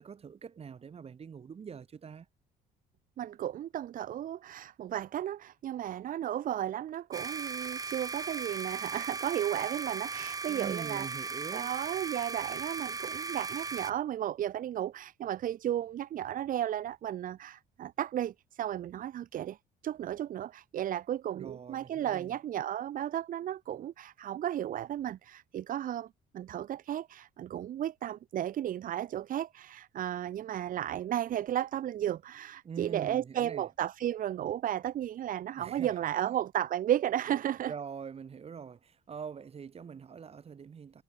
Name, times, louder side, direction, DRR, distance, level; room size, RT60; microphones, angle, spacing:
voice 1, 0.0-2.3 10.5-11.7 21.3-22.4 32.6-33.7 35.5-36.3 37.7-41.0, right 6 dB, 35° right, 3.1 m, -44 dB
voice 2, 3.2-11.1 11.5-19.6 19.8-26.1 26.3-37.7, right 11 dB, 55° right, 1.0 m, -34 dB
sound 1, 7.1-13.9, right 4 dB, 20° right, 1.0 m, -37 dB
cardioid pair, 110°, 17 cm